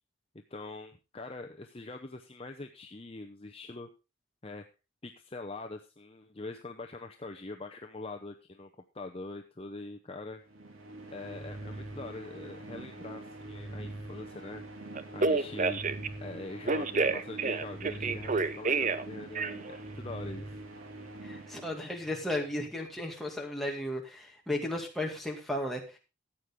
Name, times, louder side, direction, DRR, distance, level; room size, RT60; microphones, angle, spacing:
voice 1, 0.5-3.9 4.4-4.7 5.0-8.7 8.9-10.4 11.1-14.6 15.1-15.8 16.2-20.5, left 2 dB, 25° left, 4 dB, 0.7 m, -43 dB
sound 1, 10.4-22.3, right 2 dB, 70° right, 2.3 m, -44 dB
Telephone, 14.9-16.1 16.7-19.0 19.3-19.8, right 4 dB, 35° right, 0.6 m, -29 dB
voice 2, 21.2-26.0, left 1 dB, ahead, -1 dB, 2.2 m, -35 dB
14.0 x 8.4 x 3.7 m, 0.29 s
head